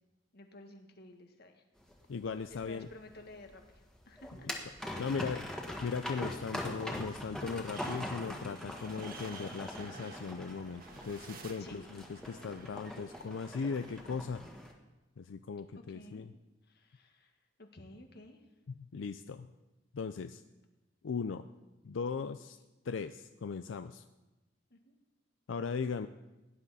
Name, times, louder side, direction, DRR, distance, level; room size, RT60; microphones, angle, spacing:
voice 1, 0.3-1.6 2.5-4.5 4.9-5.3 11.6-11.9 12.5-12.6 15.7-16.3 16.7-18.4 24.7-24.9, left 1 dB, 60° left, 4 dB, 1.6 m, -53 dB
sound 1, 1.8-14.7, left 1 dB, 5° left, 1.6 m, -42 dB
voice 2, 2.1-2.9 5.0-5.4 5.8-14.4 15.2-16.3 18.7-19.5 19.9-20.4 21.0-21.4 21.8-22.6 22.9-24.0 25.5-26.1, left 5 dB, 90° left, 10 dB, 0.4 m, -38 dB
sound 2, 7.5-14.0, right 3 dB, 50° right, 1.5 m, -52 dB
17.5 x 10.5 x 4.1 m, 1.1 s
head